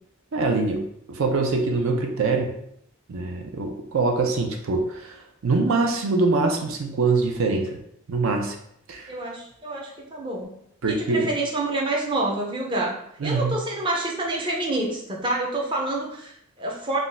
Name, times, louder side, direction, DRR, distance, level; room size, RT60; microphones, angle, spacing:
voice 1, 0.3-2.5 3.1-7.8 8.1-8.5 8.9-9.1 10.8-11.3 13.2-13.6, right 3 dB, 75° right, 3 dB, 0.5 m, -24 dB
voice 2, 9.1-10.5 10.9-12.9 13.2-17.0, right 2 dB, 25° right, -2 dB, 0.5 m, -27 dB
2.5 x 2.2 x 3.9 m, 0.72 s
head